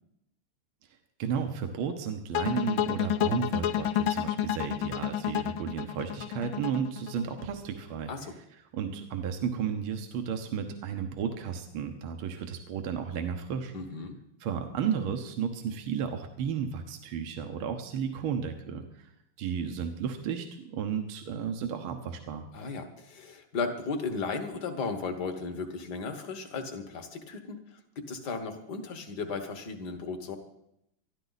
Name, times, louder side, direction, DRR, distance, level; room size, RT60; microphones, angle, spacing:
voice 1, 1.2-8.1 8.7-13.7 14.4-19.1 19.4-22.5, right 7 dB, 75° right, 6 dB, 1.9 m, -33 dB
sound 1, 2.3-7.4, left 10 dB, 75° left, 1.4 m, -30 dB
voice 2, 13.7-14.2 22.5-30.4, left 4 dB, 50° left, 7 dB, 1.9 m, -35 dB
20.5 x 13.0 x 4.1 m, 0.79 s
omnidirectional pair, 2.4 m